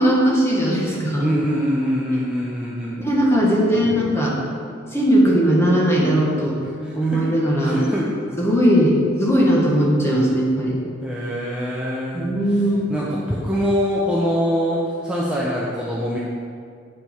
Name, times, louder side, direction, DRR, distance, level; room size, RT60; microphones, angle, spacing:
voice 1, 0.0-1.3 3.0-4.4 4.9-6.6 6.9-7.8 8.4-10.8 12.1-12.8, equal, 15° left, -4 dB, 1.4 m, -18 dB
voice 2, 1.2-3.0 6.8-7.2 7.6-8.3 11.0-12.3 12.9-16.2, equal, 5° right, -7 dB, 0.7 m, -24 dB
8.7 x 5.1 x 4.5 m, 2.3 s
head